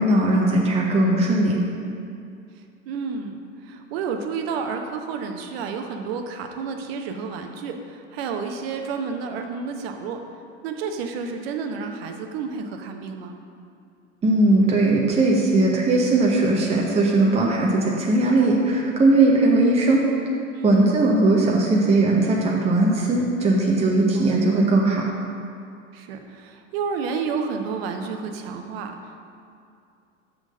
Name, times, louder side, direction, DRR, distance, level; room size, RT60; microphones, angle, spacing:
voice 1, 0.0-1.6 14.2-20.0 20.6-25.0, right 2 dB, 15° right, -2 dB, 0.9 m, -19 dB
voice 2, 2.9-10.2 10.6-13.4 20.5-20.8 23.8-24.3 25.9-29.2, right 5 dB, 50° right, 5 dB, 0.9 m, -31 dB
6.2 x 6.2 x 6.4 m, 2.4 s
figure-of-eight pair, 80°, 39 cm